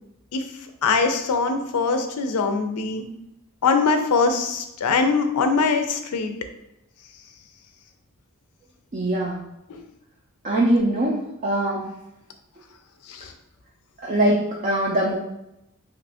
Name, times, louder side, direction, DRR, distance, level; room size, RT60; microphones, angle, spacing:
voice 1, 0.8-3.1 3.6-6.3 13.1-13.2, left 4 dB, 90° left, 7 dB, 0.4 m, -22 dB
voice 2, 8.9-9.4 10.4-11.9 14.0-15.2, right 1 dB, 35° right, -3 dB, 0.4 m, -22 dB
2.9 x 2.5 x 3.3 m, 0.86 s
head